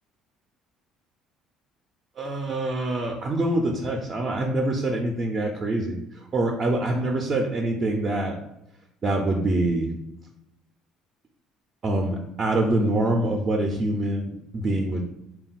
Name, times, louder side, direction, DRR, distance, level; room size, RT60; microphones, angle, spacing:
voice 1, 2.2-6.0 6.3-8.4 9.0-9.9 11.8-15.0, right 2 dB, 30° right, 1 dB, 0.4 m, -25 dB
3.7 x 2.2 x 4.0 m, 0.88 s
cardioid pair, 160°, 0 cm